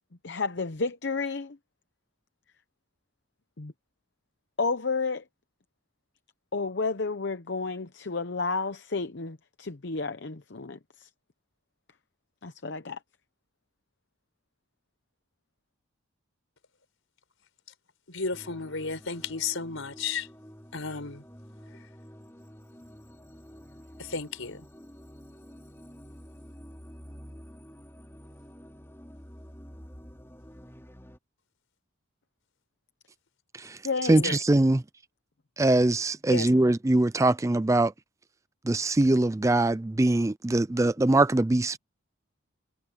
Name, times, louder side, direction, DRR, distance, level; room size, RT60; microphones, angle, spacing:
voice 1, 0.2-1.6 3.6-3.7 4.6-5.2 6.5-11.1 12.4-13.0 33.8-34.4, left 4 dB, 55° left, 0.8 m, -31 dB
voice 2, 18.1-20.3 20.7-21.2 24.0-24.7 34.1-34.4 36.3-36.5, left 4 dB, 75° left, 4.6 m, -33 dB
sound 1, 18.3-31.2, equal, 10° left, 3.3 m, -49 dB
voice 3, 34.1-34.8 35.6-37.9 38.6-41.8, right 2 dB, 15° right, 0.4 m, -22 dB
head